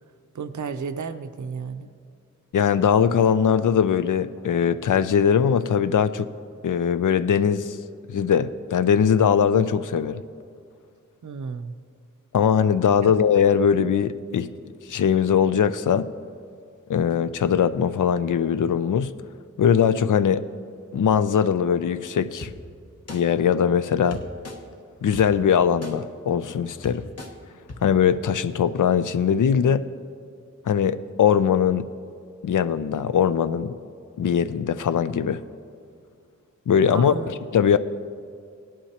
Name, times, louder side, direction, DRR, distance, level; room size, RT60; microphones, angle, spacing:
voice 1, 0.3-1.9 11.2-11.7 13.1-13.2 36.9-37.3, right 5 dB, 70° right, 9 dB, 0.6 m, -32 dB
voice 2, 2.5-6.3 6.6-7.8 8.1-10.2 12.3-14.5 14.9-16.1 16.9-19.1 19.6-20.4 20.9-22.5 23.1-24.2 25.0-27.0 27.8-29.8 30.7-31.9 32.4-33.7 34.2-35.4 36.7-37.8, left 7 dB, 80° left, 12 dB, 0.5 m, -21 dB
sound 1, 22.4-22.5 23.1-23.2 24.1-24.6 25.1-25.2 25.8-25.9 26.5-26.6 26.8-27.3 27.7-27.8, left 2 dB, 55° left, 1.1 m, -36 dB
17.5 x 11.0 x 2.9 m, 2.3 s
wide cardioid pair, 85°, 30 cm